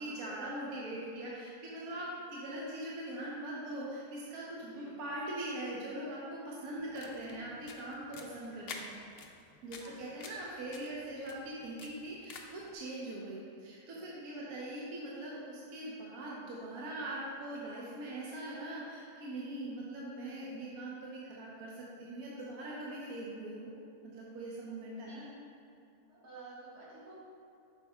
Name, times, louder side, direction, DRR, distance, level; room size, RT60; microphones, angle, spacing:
voice 1, 0.0-9.0 9.6-23.7 24.0-25.3, right 1 dB, 70° right, -5 dB, 1.3 m, -41 dB
voice 2, 4.5-4.9 6.7-6.9 9.8-10.3 13.1-13.2 14.4-14.5 25.1-25.3 26.1-27.1, right 3 dB, 90° right, -8 dB, 2.2 m, -54 dB
sound 1, 6.8-12.7, left 4 dB, 70° left, 0.5 m, -50 dB
8.4 x 6.3 x 2.3 m, 2.4 s
omnidirectional pair, 1.6 m